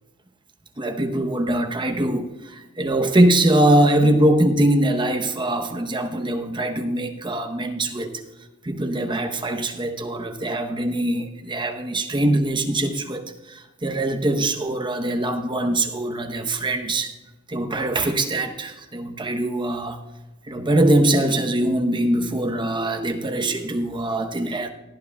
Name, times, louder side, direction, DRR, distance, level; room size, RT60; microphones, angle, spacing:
voice 1, 0.8-8.2 8.6-17.1 17.5-20.0 20.5-24.7, right 1 dB, 25° right, 5 dB, 0.9 m, -22 dB
18.5 x 12.0 x 2.3 m, 1.0 s
head